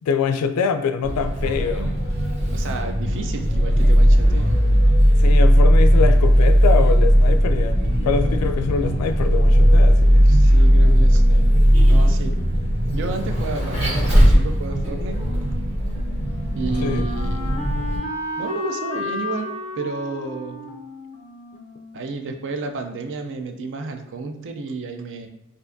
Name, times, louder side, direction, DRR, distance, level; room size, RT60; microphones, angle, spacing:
voice 1, 0.1-1.9 5.2-10.3 16.8-17.1, left 5 dB, 85° left, 9 dB, 0.3 m, -24 dB
Vehicle, 1.0-18.0, equal, 30° right, 1.2 m, -17 dB
voice 2, 2.5-4.6 10.2-12.4 12.9-15.2 16.5-17.6 18.4-19.5 19.8-20.7 21.9-25.3, right 3 dB, 60° right, 6 dB, 0.4 m, -31 dB
Wind instrument woodwind instrument, 15.8-22.6, left 2 dB, 30° left, 0.5 m, -34 dB
4.5 x 2.5 x 2.5 m, 0.94 s
head